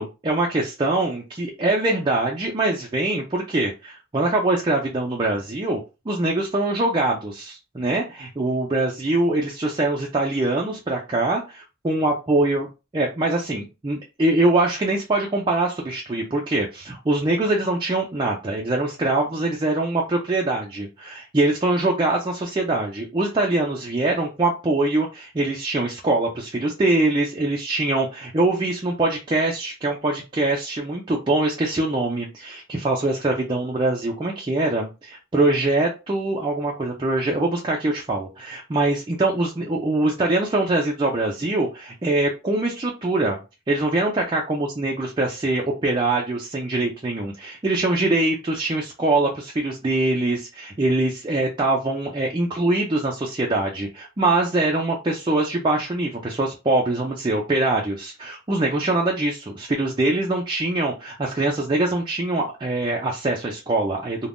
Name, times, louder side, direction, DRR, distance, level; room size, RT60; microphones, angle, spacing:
voice 1, 0.0-5.8 6.1-12.7 12.9-64.3, right 2 dB, 25° right, -1 dB, 0.4 m, -23 dB
3.4 x 2.2 x 2.5 m, 0.28 s
head